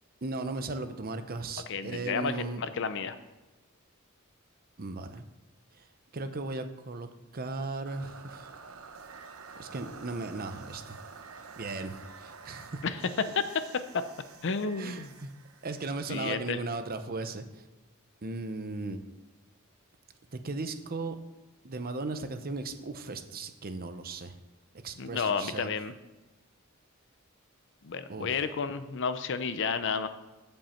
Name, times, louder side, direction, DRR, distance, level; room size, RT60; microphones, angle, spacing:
voice 1, 0.2-2.6 4.8-5.2 5.7-5.8 6.1-8.5 9.6-11.0 11.5-12.8 14.8-15.3 15.6-17.6 18.2-19.0 20.3-21.2 21.6-24.4 24.8-25.7 28.1-28.3, right 3 dB, 45° right, 9 dB, 0.8 m, -37 dB
voice 2, 1.7-3.2 12.8-13.4 14.4-15.1 16.1-16.6 25.0-25.9 27.8-30.1, left 5 dB, 60° left, 11 dB, 0.6 m, -31 dB
sound 1, 7.9-16.9, right 5 dB, 85° right, 0.8 m, -49 dB
14.5 x 5.4 x 4.4 m, 1.1 s
head